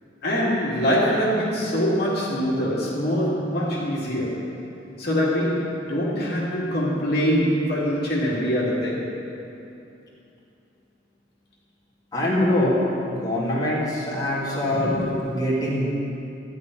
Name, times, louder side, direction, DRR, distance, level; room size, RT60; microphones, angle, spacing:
voice 1, 0.2-4.6 5.0-9.1, equal, 55° left, -6 dB, 2.3 m, -23 dB
voice 2, 12.1-12.8 13.0-15.9, left 1 dB, 20° left, -7 dB, 2.4 m, -23 dB
13.0 x 5.5 x 9.2 m, 2.8 s
head